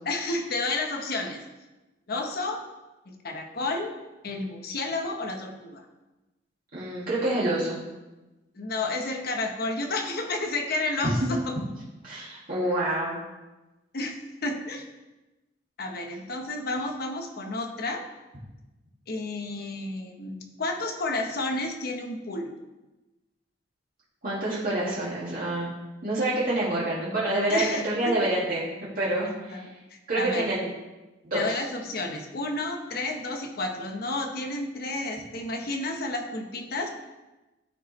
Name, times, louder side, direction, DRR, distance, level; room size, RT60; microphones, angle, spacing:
voice 1, 0.1-1.4 2.1-2.6 3.1-3.9 4.2-5.8 8.5-11.5 13.9-14.2 14.4-14.8 15.8-18.0 19.1-22.5 27.5-28.1 29.5-29.7 30.1-30.5 31.3-36.9, left 2 dB, 55° left, 3 dB, 1.0 m, -31 dB
voice 2, 6.7-7.8 11.0-11.3 12.0-13.2 24.2-25.7 26.0-28.7 29.0-29.6 30.1-30.7 31.2-31.6, right 1 dB, 50° right, -8 dB, 1.9 m, -27 dB
13.5 x 4.6 x 3.2 m, 1.1 s
head